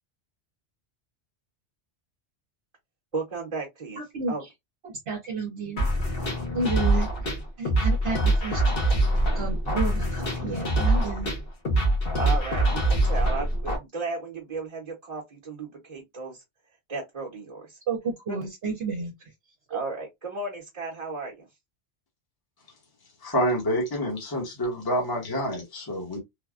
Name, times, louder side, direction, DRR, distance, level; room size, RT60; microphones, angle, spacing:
voice 1, 3.1-4.0 4.3-4.4 12.2-16.4 16.9-17.8 18.3-18.4 19.7-21.5, right 3 dB, 35° right, 0.9 m, -34 dB
voice 2, 4.0-4.5 4.8-5.9 6.5-9.0 9.3-11.3 17.9-19.3 19.7-19.8, right 4 dB, 65° right, 1.0 m, -32 dB
sound 1, 5.8-13.8, right 1 dB, 55° left, 1.2 m, -24 dB
voice 3, 23.2-26.2, equal, 20° left, 1.0 m, -27 dB
3.3 x 2.2 x 2.3 m
omnidirectional pair, 1.2 m